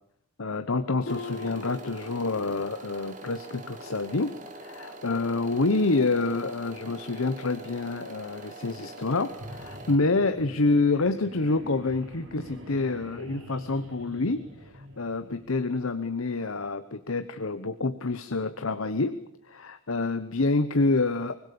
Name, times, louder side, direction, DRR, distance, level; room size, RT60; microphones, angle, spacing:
voice 1, 0.4-21.3, left 3 dB, 85° left, 11 dB, 1.0 m, -27 dB
Harp, 1.1-2.8 3.2-3.6 4.1-4.3, left 3 dB, 60° left, 0.9 m, -40 dB
sound 1, 1.1-10.0, right 2 dB, 35° right, 2.6 m, -44 dB
sound 2, 9.3-15.5, equal, 75° right, 5.3 m, -45 dB
24.0 x 21.0 x 6.9 m, 0.74 s
head